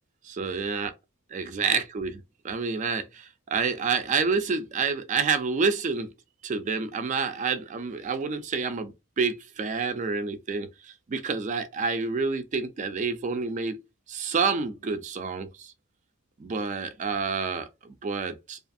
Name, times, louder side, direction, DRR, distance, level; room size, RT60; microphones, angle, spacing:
voice 1, 0.2-0.9 1.3-6.1 6.4-13.8 14.1-15.7 16.4-18.6, right 5 dB, 35° right, 0.3 m, -28 dB
2.4 x 2.3 x 2.5 m
head